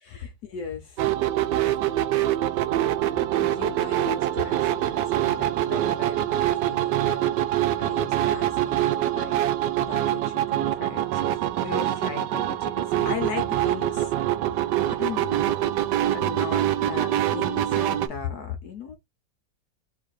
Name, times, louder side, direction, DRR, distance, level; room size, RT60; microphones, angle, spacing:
voice 1, 0.1-1.0 2.5-7.4 7.8-9.5 9.8-14.1 14.9-15.5 16.1-19.0, left 6 dB, 65° left, 1.2 m, -37 dB
sound 1, 1.0-18.1, right 12 dB, 75° right, 1.1 m, -24 dB
3.8 x 2.6 x 4.7 m
omnidirectional pair, 2.0 m